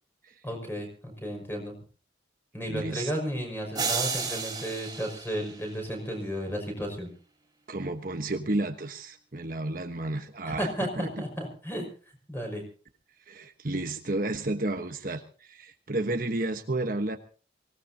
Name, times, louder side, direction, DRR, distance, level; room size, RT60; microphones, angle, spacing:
voice 1, 0.4-1.8 2.5-7.1 10.5-11.8 12.3-12.6, equal, 10° left, 2 dB, 5.7 m, -33 dB
voice 2, 2.7-3.1 7.7-11.2 13.3-17.2, right 2 dB, 50° right, 5 dB, 1.2 m, -32 dB
sound 1, 3.7-6.1, right 5 dB, 20° right, 4.1 m, -33 dB
24.0 x 18.0 x 2.8 m, 0.38 s
head